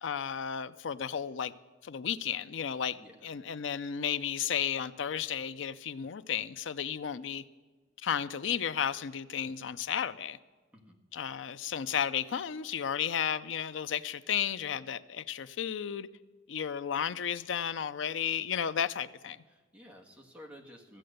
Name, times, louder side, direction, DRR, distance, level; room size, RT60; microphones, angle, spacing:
voice 1, 0.0-1.5 1.8-7.4 8.0-10.4 11.1-16.1 16.5-19.4, left 8 dB, 80° left, 14 dB, 0.5 m, -33 dB
voice 2, 2.9-3.3 10.7-11.0 19.5-21.0, equal, 5° right, 0 dB, 1.5 m, -53 dB
14.0 x 7.7 x 6.5 m, 1.3 s
head